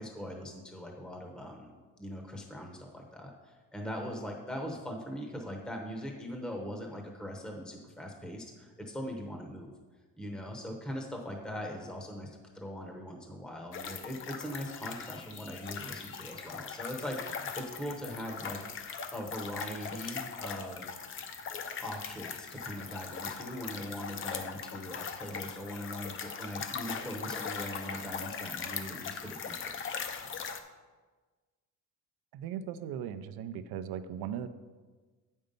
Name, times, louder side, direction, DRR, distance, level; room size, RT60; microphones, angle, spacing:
voice 1, 0.0-9.7 10.2-18.6 19.1-20.9 21.8-29.8, equal, ahead, 2 dB, 0.8 m, -41 dB
sound 1, 13.7-30.6, left 6 dB, 35° left, 0.5 m, -40 dB
voice 2, 32.3-34.5, right 9 dB, 80° right, 11 dB, 0.6 m, -38 dB
7.9 x 5.4 x 5.2 m, 1.4 s
cardioid pair, 150°, 37 cm